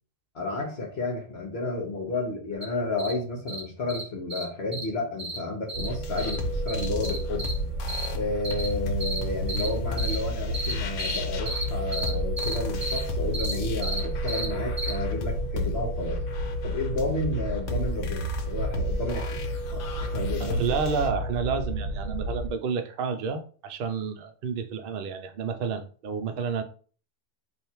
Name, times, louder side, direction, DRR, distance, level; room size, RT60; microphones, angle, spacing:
voice 1, 0.3-7.5 8.1-16.2 16.6-20.6, left 2 dB, 60° left, 1 dB, 1.1 m, -32 dB
sound 1, 2.6-2.7 3.0-3.1 3.5-3.6 3.9-4.0 4.3-4.4 4.7-4.8 5.2-5.4 5.7-5.9 6.2-6.4 6.7-7.5 7.9-8.1 8.4-8.7 9.0-9.2 9.5-9.7 10.0-10.2 10.5-10.7 11.0-11.2 11.5-11.7 11.9-12.1 12.4-12.5 12.8-13.0 13.3-13.5 13.8-14.0 14.3-14.5 14.8-14.9, right 2 dB, 20° right, 0.8 m, -32 dB
sound 2, 5.7-22.5, right 1 dB, 85° right, 1.0 m, -31 dB
sound 3, 5.9-21.1, left 2 dB, 80° left, 1.0 m, -35 dB
voice 2, 20.4-26.6, right 5 dB, 55° right, 7 dB, 0.7 m, -30 dB
3.4 x 2.6 x 4.3 m, 0.41 s
omnidirectional pair, 1.3 m